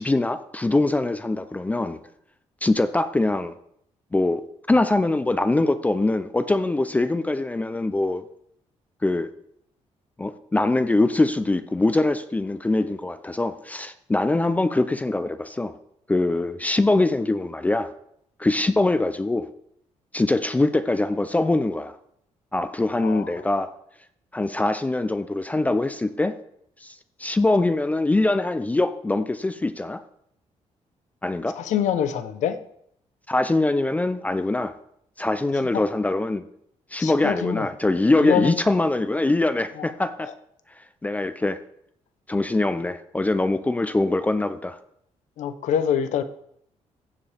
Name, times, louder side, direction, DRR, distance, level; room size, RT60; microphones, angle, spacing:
voice 1, 0.0-2.0 2.6-3.5 4.1-4.4 4.7-8.2 9.0-9.3 10.2-15.7 16.1-17.9 18.4-19.5 20.1-21.9 22.5-23.7 24.3-26.4 26.8-26.9 27.2-30.0 31.2-31.6 33.3-34.7 35.2-36.4 36.9-40.3 41.0-41.6 42.3-44.8, left 2 dB, 10° left, 11 dB, 0.4 m, -23 dB
voice 2, 23.0-23.3 31.6-32.6 35.7-35.8 37.0-37.7 38.2-38.5 39.8-39.9 40.2-40.3 45.4-46.2, left 9 dB, 80° left, 11 dB, 0.8 m, -25 dB
15.0 x 7.2 x 3.4 m, 0.71 s
cardioid pair, 135°, 12 cm